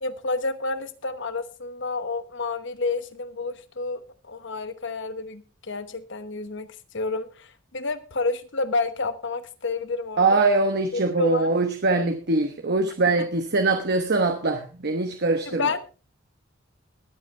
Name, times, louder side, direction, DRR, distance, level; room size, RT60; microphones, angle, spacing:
voice 1, 0.0-4.0 4.3-6.7 6.9-10.2 11.2-11.5 15.5-15.8, left 3 dB, 65° left, 1.1 m, -29 dB
voice 2, 10.2-15.8, right 3 dB, 55° right, 1.2 m, -23 dB
21.5 x 8.2 x 3.3 m
head